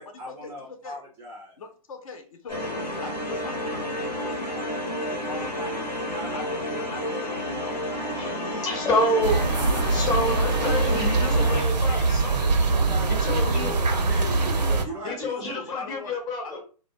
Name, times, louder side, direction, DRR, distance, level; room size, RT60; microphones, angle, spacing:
voice 1, 0.0-1.5 4.5-4.6 5.1-6.8 9.1-10.3 12.7-15.5, right 1 dB, 10° right, 0.4 m, -39 dB
voice 2, 1.6-4.7 5.3-5.7 6.3-8.7 9.7-10.8 11.9-12.6 13.4-13.7 15.0-16.6, left 5 dB, 55° left, 0.6 m, -41 dB
sound 1, 2.5-11.6, left 1 dB, 85° left, 0.8 m, -31 dB
voice 3, 8.2-9.4 9.8-12.2 13.1-13.8 15.1-16.6, left 1 dB, 20° left, 0.7 m, -28 dB
sound 2, 9.2-14.8, right 3 dB, 90° right, 0.5 m, -23 dB
2.2 x 2.1 x 2.6 m
figure-of-eight pair, 125°, 21 cm